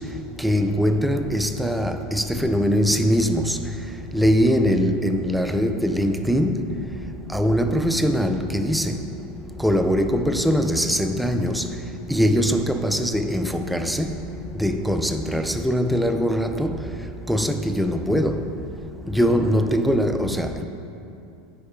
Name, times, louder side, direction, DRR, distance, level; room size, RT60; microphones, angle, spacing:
voice 1, 0.4-3.6 4.1-6.6 7.3-9.0 9.6-11.7 12.1-14.1 14.5-16.8 17.3-18.4 19.1-20.7, equal, ahead, 6 dB, 0.5 m, -22 dB
9.6 x 4.8 x 4.4 m, 2.7 s
hypercardioid pair, 80°, 0 cm